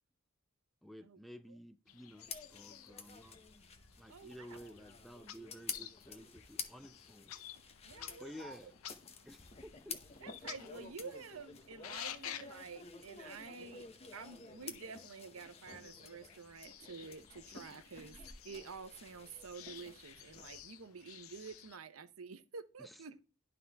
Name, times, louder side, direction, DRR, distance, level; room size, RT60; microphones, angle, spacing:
voice 1, 0.8-3.4 4.0-7.3 8.2-8.7 9.2-10.0 22.8-23.0, equal, ahead, 0.4 m, -53 dB
sound 1, 1.9-21.8, left 10 dB, 85° left, 0.6 m, -53 dB
sound 2, 2.2-20.6, left 5 dB, 30° left, 0.8 m, -51 dB
voice 2, 4.1-4.7 7.8-8.6 10.2-13.9 14.1-18.2 18.4-23.2, right 5 dB, 85° right, 0.8 m, -49 dB
11.0 x 3.9 x 3.4 m
head